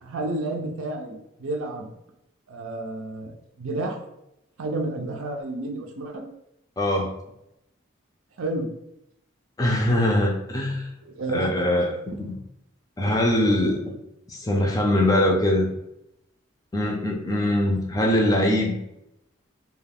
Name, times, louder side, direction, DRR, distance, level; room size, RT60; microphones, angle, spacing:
voice 1, 0.0-1.9 2.5-4.0 4.6-6.3 8.4-8.7 11.0-11.5, right 2 dB, 85° right, 3 dB, 0.6 m, -31 dB
voice 2, 6.8-7.1 9.6-10.9 11.3-12.4 13.0-13.8 14.3-15.7 16.7-18.8, left 1 dB, 20° left, 1 dB, 0.4 m, -22 dB
2.3 x 2.3 x 3.4 m, 0.82 s
head